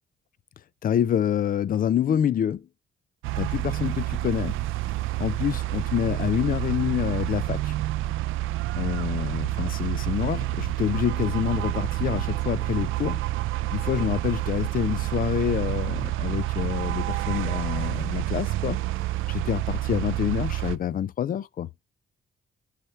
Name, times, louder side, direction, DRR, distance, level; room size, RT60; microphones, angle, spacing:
voice 1, 0.8-2.7 3.4-4.6 5.2-7.7 8.7-13.2 13.7-18.8 19.3-21.7, left 10 dB, 45° left, 0.4 m, -27 dB
sound 1, 3.2-20.8, right 16 dB, 85° right, 0.4 m, -28 dB
10.0 x 3.4 x 4.4 m
cardioid pair, 90°, 20 cm